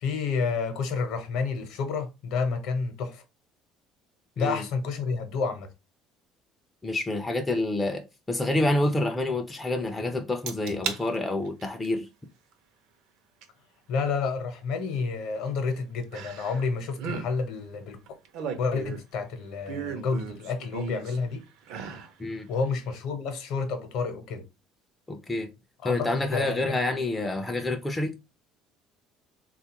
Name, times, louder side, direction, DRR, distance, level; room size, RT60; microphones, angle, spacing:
voice 1, 0.0-3.2 4.4-5.7 13.9-18.0 18.6-21.4 22.5-24.4 25.8-26.7, left 4 dB, 60° left, 0.8 m, -30 dB
voice 2, 6.8-12.1 22.2-22.5 25.1-25.5 25.8-28.2, left 2 dB, 10° left, 0.3 m, -28 dB
sound 1, 10.5-11.0 11.5-11.9 13.4-13.5 16.1-16.7 16.9-17.3 18.1-19.1 19.7-21.2 21.6-22.1 22.5-22.6, right 6 dB, 65° right, 0.6 m, -35 dB
3.7 x 2.3 x 2.8 m
cardioid pair, 165°, 0 cm